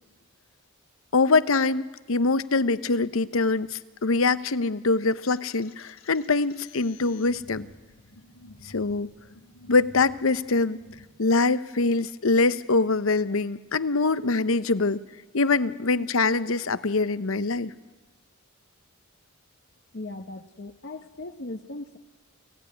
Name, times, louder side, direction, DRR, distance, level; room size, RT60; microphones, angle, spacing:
voice 1, 1.1-7.7 8.6-9.1 9.7-10.8 11.2-15.0 15.3-17.7, left 3 dB, 75° left, 15 dB, 0.9 m, -24 dB
sound 1, 5.3-11.0, left 2 dB, 90° left, 2.3 m, -51 dB
voice 2, 19.9-22.0, left 2 dB, 55° left, 5 dB, 1.1 m, -38 dB
29.0 x 17.0 x 9.7 m, 1.2 s
head